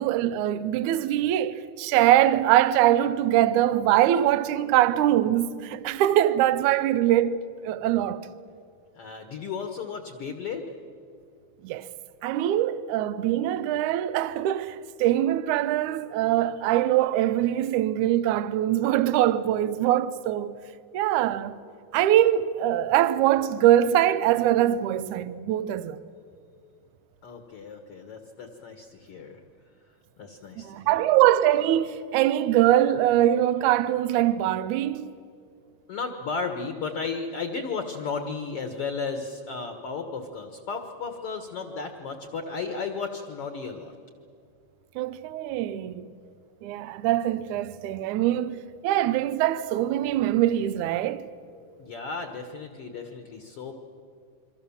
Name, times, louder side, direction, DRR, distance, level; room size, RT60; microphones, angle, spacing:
voice 1, 0.0-7.4 7.6-8.3 11.6-11.9 12.2-20.6 20.9-21.6 21.9-26.0 30.6-35.1 44.9-46.1 46.6-51.3, right 12 dB, 80° right, 1.8 m, -23 dB
voice 2, 8.9-10.7 27.2-29.4 30.2-31.0 35.9-43.9 51.8-53.7, left 4 dB, 55° left, 1.7 m, -34 dB
28.0 x 24.0 x 7.1 m
omnidirectional pair, 4.4 m